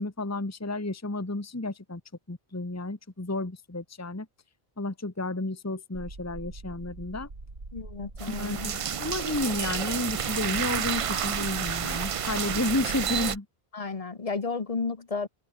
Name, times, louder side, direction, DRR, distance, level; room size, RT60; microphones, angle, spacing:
voice 1, 0.0-2.0 2.3-4.3 4.8-7.3 8.3-13.5, left 2 dB, 15° left, 1.3 m, -32 dB
velvet infrared noise, 5.9-13.4, right 3 dB, 90° right, 3.6 m, -42 dB
voice 2, 7.7-8.7 13.7-15.3, left 4 dB, 35° left, 1.1 m, -32 dB
sound 1, 8.2-13.4, right 8 dB, 50° right, 0.4 m, -30 dB
omnidirectional pair, 1.1 m